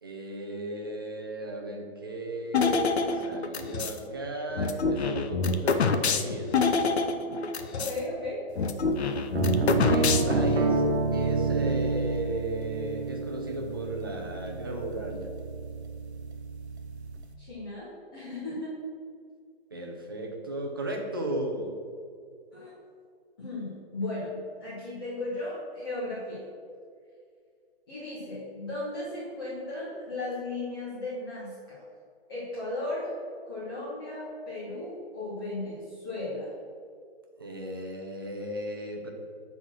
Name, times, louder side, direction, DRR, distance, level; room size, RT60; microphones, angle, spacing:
voice 1, 0.0-6.5 9.9-10.8 11.1-15.3 19.7-21.8 37.4-39.1, right 1 dB, 20° right, 1 dB, 0.5 m, -35 dB
sound 1, 2.5-4.0 4.6-8.0 8.2-8.3 8.6-10.5, left 4 dB, 80° left, 0.7 m, -26 dB
voice 2, 7.7-8.4 17.4-18.7 22.5-22.7 23.4-26.4 27.9-31.8 32.3-33.1 33.4-36.5, left 2 dB, 20° left, -9 dB, 1.2 m, -36 dB
sound 2, 9.3-17.2, right 3 dB, 85° right, 1.0 m, -29 dB
6.5 x 4.1 x 5.9 m, 2.1 s
hypercardioid pair, 175°, 32 cm